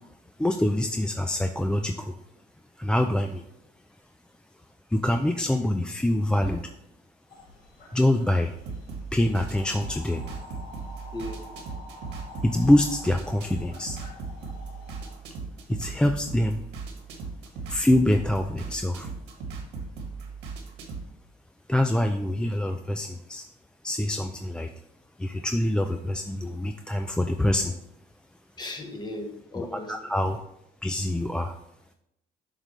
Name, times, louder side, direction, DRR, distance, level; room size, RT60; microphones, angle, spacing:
voice 1, 0.4-2.1 2.8-3.4 4.9-6.6 7.9-8.5 9.1-10.2 12.4-14.0 15.7-16.6 17.7-19.1 21.7-23.5 23.8-24.7 25.2-27.7 29.6-30.4 30.8-31.6, left 1 dB, 5° left, 5 dB, 0.3 m, -25 dB
sound 1, 7.3-15.2, left 2 dB, 60° left, 2.3 m, -47 dB
sound 2, 8.6-21.1, right 4 dB, 85° right, 1.4 m, -38 dB
voice 2, 28.6-30.0, left 1 dB, 25° left, 4 dB, 1.2 m, -36 dB
7.3 x 5.2 x 3.1 m, 0.82 s
cardioid pair, 110°, 17 cm